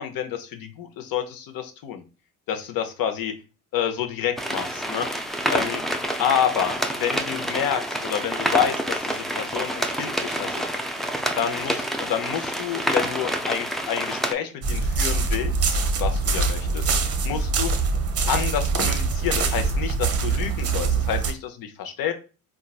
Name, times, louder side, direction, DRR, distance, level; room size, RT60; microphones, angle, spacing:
voice 1, 0.0-2.0 2.5-3.4 3.7-5.1 5.5-5.8 6.2-10.7 11.4-16.9 17.2-17.7 18.3-22.1, left 9 dB, 55° left, 7 dB, 0.7 m, -28 dB
sound 1, 4.4-14.3, equal, ahead, 0.3 m, -28 dB
sound 2, 14.6-21.3, right 4 dB, 35° right, 0.7 m, -23 dB
3.8 x 2.4 x 2.3 m, 0.33 s
hypercardioid pair, 65°, 43 cm